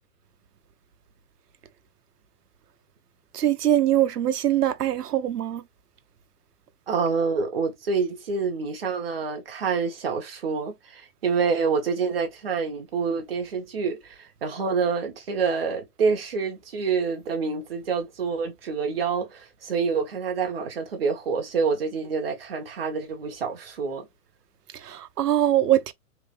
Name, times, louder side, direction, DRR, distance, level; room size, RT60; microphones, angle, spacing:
voice 1, 3.3-5.6 24.7-25.9, right 12 dB, 85° right, 0.9 m, -22 dB
voice 2, 6.9-24.1, right 5 dB, 40° right, 1.2 m, -27 dB
3.4 x 3.2 x 3.2 m
hypercardioid pair, 180°, 46 cm